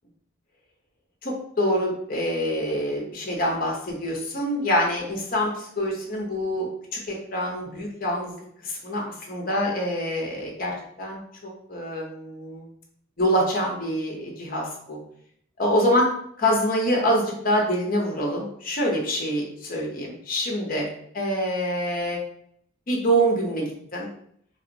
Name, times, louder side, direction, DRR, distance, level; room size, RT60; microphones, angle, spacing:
voice 1, 1.2-12.7 13.2-15.0 15.6-16.1 16.4-20.9 21.1-22.2 22.9-24.1, equal, 45° left, -1 dB, 0.7 m, -26 dB
2.8 x 2.0 x 2.6 m, 0.67 s
head